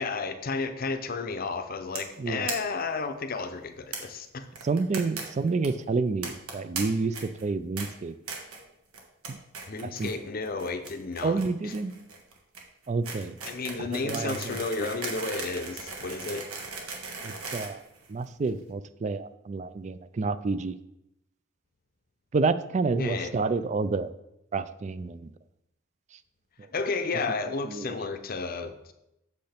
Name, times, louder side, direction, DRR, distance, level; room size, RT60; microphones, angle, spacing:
voice 1, 0.0-4.5 9.7-11.7 13.5-16.5 23.0-23.3 26.7-28.9, left 4 dB, 45° left, 8 dB, 0.6 m, -32 dB
sound 1, 1.9-2.1 2.5-2.6 2.8-2.9 3.1-3.2 3.9-4.0 4.5-5.2 5.5-5.7 6.2-6.8 7.1-7.4 7.8-7.9 8.3-8.6 8.9-9.3 9.5-10.1 10.4-18.5, right 4 dB, 85° right, 1.5 m, -37 dB
voice 2, 2.2-2.5 4.6-8.1 9.3-9.4 9.8-10.1 11.2-11.9 12.9-13.3 13.8-14.9 17.2-17.8 18.1-20.8 22.3-24.1 24.5-25.3 27.6-28.0, right 4 dB, 35° right, 13 dB, 0.3 m, -29 dB
7.9 x 6.7 x 3.4 m, 0.85 s
head